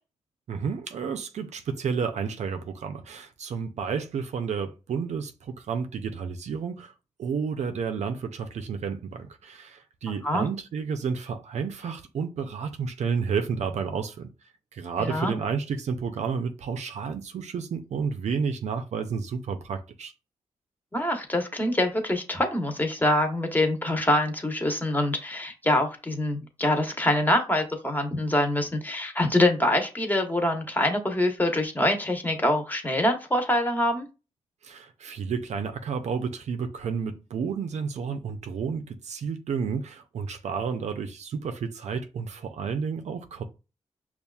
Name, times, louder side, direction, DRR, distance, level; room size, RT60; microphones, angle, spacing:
voice 1, 0.5-6.9 7.2-14.3 14.7-20.1 34.6-43.4, right 6 dB, 75° right, 0.5 m, -31 dB
voice 2, 15.0-15.3 20.9-34.1, left 1 dB, 15° left, 1.1 m, -25 dB
5.4 x 2.4 x 2.3 m
cardioid pair, 60°, 12 cm